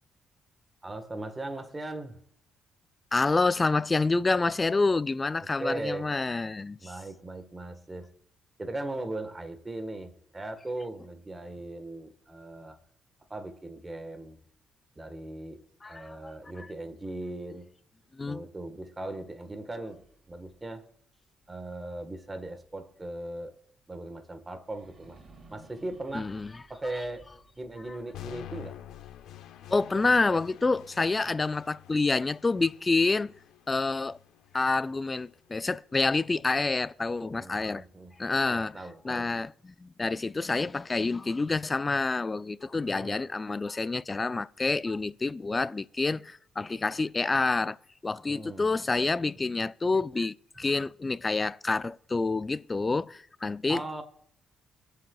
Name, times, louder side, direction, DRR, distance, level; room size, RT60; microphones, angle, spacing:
voice 1, 0.8-2.2 5.6-6.1 6.8-8.1 8.6-12.8 13.3-14.4 15.0-17.7 18.3-20.8 21.5-23.5 23.9-25.2 25.5-26.3 26.7-27.3 27.6-28.8 31.2-31.3 37.2-38.1 38.5-39.3 42.9-43.2 48.3-48.7 53.7-54.0, right 2 dB, 20° right, 1.3 m, -38 dB
voice 2, 3.1-6.9 15.8-16.1 16.6-16.7 18.1-18.4 26.1-26.5 29.7-33.3 33.7-34.2 34.5-37.8 38.2-38.8 39.0-47.8 48.0-54.0, left 3 dB, 25° left, 0.3 m, -28 dB
sound 1, 19.8-22.7 23.1-23.2 24.6-29.7, right 3 dB, 50° right, 1.9 m, -58 dB
sound 2, 28.1-36.2, left 12 dB, 85° left, 0.8 m, -48 dB
23.0 x 7.8 x 2.3 m
cardioid pair, 90°, 0 cm